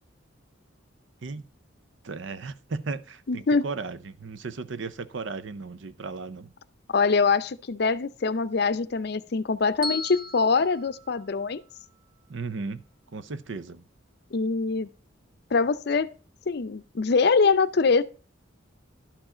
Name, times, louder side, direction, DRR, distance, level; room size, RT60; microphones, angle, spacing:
voice 1, 2.0-6.5 12.3-12.8 13.1-13.8, right 4 dB, 70° right, 0.6 m, -35 dB
voice 2, 3.3-3.7 6.9-11.6 14.3-14.9 15.5-16.1 16.5-18.0, left 4 dB, 55° left, 0.5 m, -23 dB
Bell, 9.8-12.0, left 1 dB, 25° right, 0.8 m, -37 dB
11.5 x 4.9 x 4.9 m
head